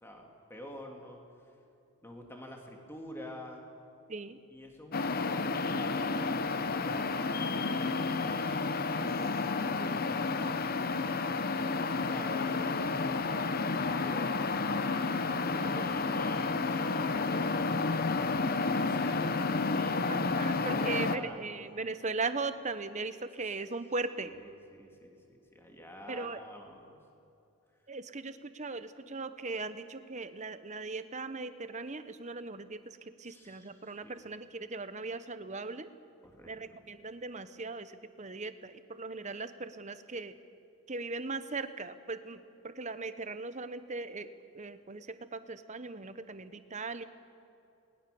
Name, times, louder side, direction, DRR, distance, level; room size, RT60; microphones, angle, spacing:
voice 1, 0.0-1.2 2.0-3.6 4.5-8.5 8.8-10.5 11.9-13.2 13.5-21.4 24.2-27.0 33.3-34.2 36.2-36.5, left 1 dB, 10° left, 1 dB, 2.8 m, -47 dB
voice 2, 4.1-4.4 15.8-15.9 20.1-24.3 26.1-26.4 27.9-35.9 36.5-40.3 40.9-44.3 44.5-47.0, right 3 dB, 30° right, 11 dB, 1.0 m, -39 dB
sound 1, 4.9-21.2, left 3 dB, 40° left, 0.8 m, -31 dB
29.0 x 20.5 x 7.0 m, 2.7 s
head